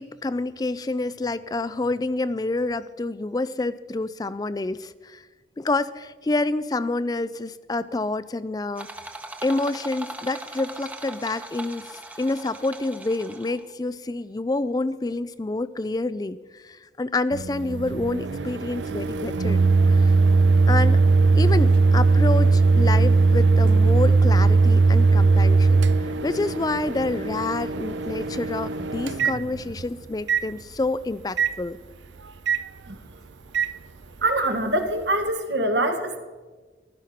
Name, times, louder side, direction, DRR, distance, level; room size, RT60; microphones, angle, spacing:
voice 1, 0.0-5.3 5.6-8.9 9.4-19.6 19.9-20.1 20.7-21.0 21.3-31.8, left 2 dB, 20° left, 15 dB, 0.3 m, -28 dB
sound 1, 8.8-13.7, right 2 dB, 10° right, 1.0 m, -39 dB
Microwave oven, 17.3-29.9 30.3-30.4 31.4-31.5 32.5-32.6 33.5-33.7, right 3 dB, 90° right, 0.6 m, -19 dB
voice 2, 34.2-36.2, right 1 dB, 75° right, 5 dB, 1.8 m, -24 dB
15.5 x 12.5 x 5.8 m, 1.3 s
head